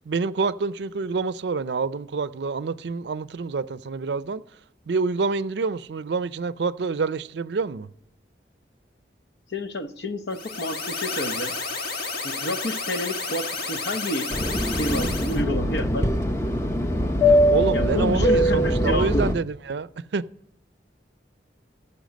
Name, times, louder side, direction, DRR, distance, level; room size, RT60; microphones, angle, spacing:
voice 1, 0.0-4.4 4.9-7.9 17.3-20.2, right 4 dB, 75° right, 0.5 m, -27 dB
voice 2, 9.5-11.5 12.2-14.3 14.8-16.1 17.7-19.4, left 1 dB, 75° left, 0.9 m, -29 dB
sound 1, 10.3-15.4, left 3 dB, 60° left, 1.5 m, -31 dB
Fixed-wing aircraft airplane, 14.3-19.3, equal, 15° left, 0.6 m, -22 dB
14.0 x 7.0 x 5.2 m
head